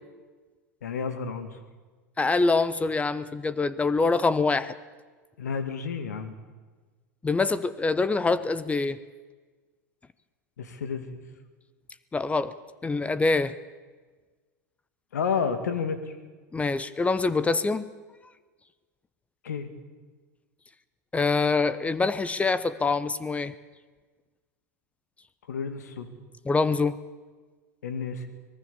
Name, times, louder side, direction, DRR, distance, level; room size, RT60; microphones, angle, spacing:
voice 1, 0.8-1.6 5.4-6.3 10.6-11.2 15.1-16.0 19.4-19.7 25.5-26.2 27.8-28.3, left 6 dB, 85° left, 10 dB, 2.4 m, -31 dB
voice 2, 2.2-4.7 7.2-9.0 12.1-12.5 12.8-13.5 16.5-17.9 21.1-23.5 26.5-27.0, left 3 dB, 15° left, 16 dB, 0.9 m, -25 dB
24.5 x 19.0 x 7.2 m, 1.4 s
hypercardioid pair, 100°, 9 cm